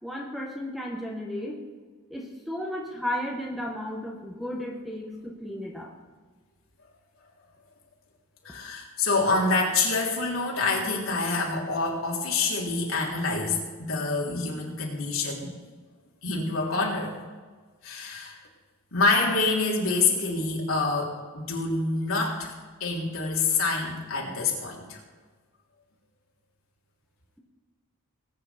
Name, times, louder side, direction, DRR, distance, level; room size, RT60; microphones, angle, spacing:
voice 1, 0.0-1.6 2.1-5.9, left 1 dB, ahead, -1 dB, 1.5 m, -34 dB
voice 2, 8.4-15.5 16.2-17.1 17.8-18.4 18.9-22.5 22.8-25.0, left 3 dB, 65° left, -2 dB, 3.3 m, -26 dB
20.0 x 9.3 x 4.4 m, 1.4 s
head